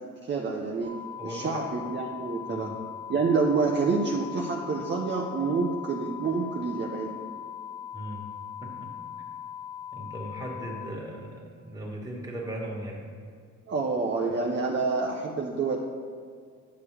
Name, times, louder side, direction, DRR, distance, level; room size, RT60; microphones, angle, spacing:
voice 1, 0.2-0.9 1.2-2.7 3.1-7.1 13.7-15.8, right 4 dB, 35° right, -1 dB, 0.8 m, -28 dB
sound 1, 0.8-10.8, left 9 dB, 70° left, 2.3 m, -40 dB
voice 2, 1.1-1.7 2.5-2.7 7.9-8.2 8.6-9.1 9.9-13.0, right 1 dB, 10° right, -3 dB, 1.9 m, -38 dB
10.5 x 6.8 x 3.4 m, 2.1 s
cardioid pair, 90°, 30 cm